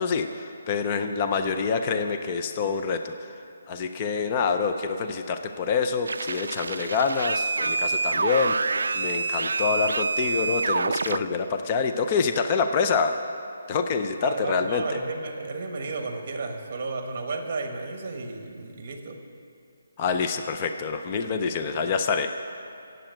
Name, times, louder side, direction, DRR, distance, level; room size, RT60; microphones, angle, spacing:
voice 1, 0.0-3.1 3.7-8.5 8.9-13.2 13.7-15.0 20.0-22.3, left 5 dB, 20° left, 7 dB, 0.4 m, -26 dB
sound 1, 6.1-11.2, right 4 dB, 80° right, 0.3 m, -27 dB
voice 2, 14.2-19.2, right 3 dB, 30° right, 5 dB, 1.3 m, -33 dB
16.0 x 7.9 x 7.8 m, 2.5 s
hypercardioid pair, 180°, 0 cm